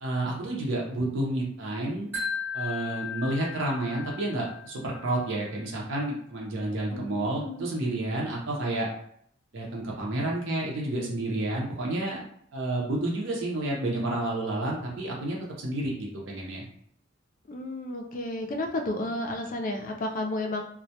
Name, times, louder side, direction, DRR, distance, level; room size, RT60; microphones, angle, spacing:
voice 1, 0.0-2.1 2.5-8.9 9.5-12.2 12.5-16.6, right 1 dB, 65° right, -3 dB, 0.6 m, -30 dB
Wind chime, 2.1-5.2, left 5 dB, 10° right, 0.6 m, -36 dB
voice 2, 6.9-7.7 17.5-20.6, left 1 dB, 40° left, 3 dB, 0.4 m, -32 dB
2.1 x 2.0 x 2.8 m, 0.65 s
head